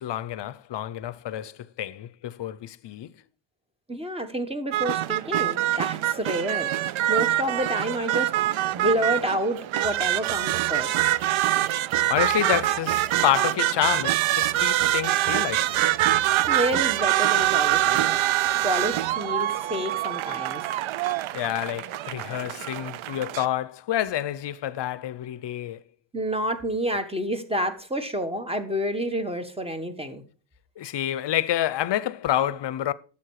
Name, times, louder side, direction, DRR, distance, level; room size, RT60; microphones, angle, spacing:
voice 1, 0.0-3.1 11.6-15.9 21.3-25.8 30.8-32.9, left 12 dB, 60° left, 0.7 m, -28 dB
voice 2, 3.9-8.3 8.7-11.0 16.4-20.6 26.1-30.2, equal, 10° right, 1.2 m, -29 dB
sound 1, 4.7-23.5, right 14 dB, 75° right, 0.6 m, -25 dB
12.5 x 7.2 x 4.7 m
wide cardioid pair, 140°, 48 cm